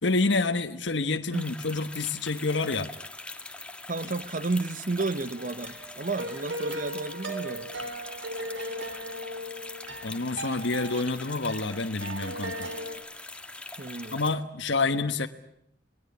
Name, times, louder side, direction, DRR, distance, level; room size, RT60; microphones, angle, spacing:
voice 1, 0.0-2.9 10.0-12.7 14.1-15.3, left 3 dB, 70° left, 1.3 m, -28 dB
sound 1, 1.3-14.4, left 2 dB, 5° left, 1.7 m, -43 dB
voice 2, 3.9-7.7 13.8-14.2, right 3 dB, 45° right, 1.1 m, -32 dB
sound 2, 5.3-12.9, right 1 dB, 70° right, 4.6 m, -38 dB
27.0 x 20.0 x 9.7 m
head